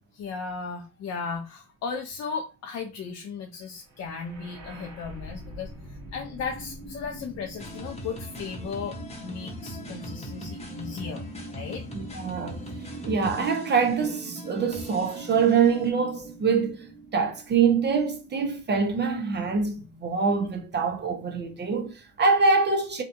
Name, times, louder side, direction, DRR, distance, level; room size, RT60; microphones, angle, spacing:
voice 1, 0.1-11.2 11.5-11.9, left 5 dB, 60° left, 0.5 m, -36 dB
sound 1, 3.9-17.9, right 2 dB, 75° right, 1.2 m, -42 dB
sound 2, 7.6-15.9, left 1 dB, 20° left, 0.8 m, -42 dB
voice 2, 11.9-12.6 13.0-23.0, right 5 dB, 35° right, 0.5 m, -24 dB
2.7 x 2.2 x 2.5 m
cardioid pair, 90°, 30 cm